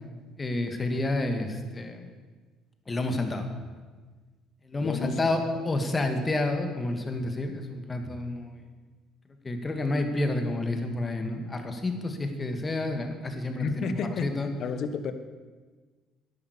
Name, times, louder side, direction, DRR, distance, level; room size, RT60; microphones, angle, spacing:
voice 1, 0.4-2.1 2.9-3.5 4.7-8.6 9.4-13.9 14.2-14.5, left 2 dB, 25° left, 6 dB, 2.4 m, -29 dB
voice 2, 4.8-5.2 13.6-15.1, left 5 dB, 60° left, 10 dB, 1.4 m, -32 dB
11.5 x 10.5 x 8.5 m, 1.4 s
supercardioid pair, 80°, 0 cm